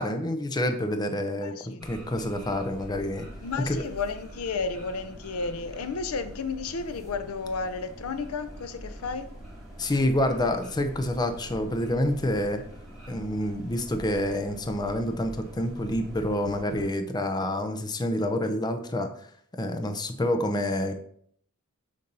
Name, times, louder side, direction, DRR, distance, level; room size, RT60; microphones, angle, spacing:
voice 1, 0.0-3.3 3.7-3.8 9.8-12.6 13.1-19.1 19.5-21.0, left 1 dB, 20° left, 0.5 m, -28 dB
voice 2, 1.4-1.9 3.4-9.3, left 4 dB, 80° left, 0.5 m, -32 dB
sound 1, 1.8-16.9, equal, ahead, 1.9 m, -44 dB
6.7 x 2.7 x 5.3 m
head